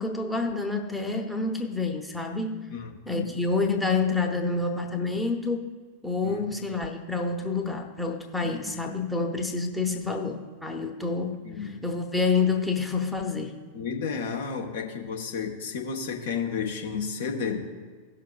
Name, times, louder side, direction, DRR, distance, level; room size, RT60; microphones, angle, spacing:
voice 1, 0.0-2.6 3.1-5.7 6.0-11.4 11.8-13.6, left 4 dB, ahead, 2 dB, 0.9 m, -28 dB
voice 2, 2.7-3.4 6.2-6.7 8.4-9.0 11.4-11.8 13.7-17.6, left 6 dB, 60° left, 1 dB, 1.1 m, -32 dB
17.5 x 6.6 x 2.4 m, 1.5 s
figure-of-eight pair, 90°, 0 cm